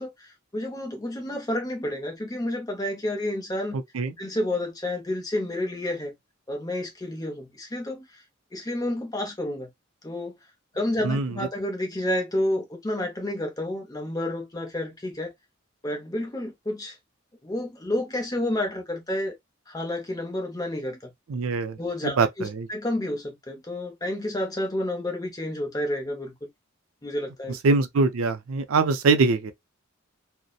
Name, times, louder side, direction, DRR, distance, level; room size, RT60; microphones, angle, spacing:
voice 1, 0.0-3.8 4.2-6.1 6.5-8.2 8.5-9.7 10.0-10.4 10.7-15.3 15.8-17.0 17.4-19.3 19.7-21.1 21.8-26.5 27.0-27.6, left 1 dB, 20° left, 0.6 m, -30 dB
voice 2, 21.3-21.8 22.2-22.7 27.6-29.5, right 4 dB, 80° right, 0.4 m, -23 dB
2.7 x 2.0 x 2.3 m
head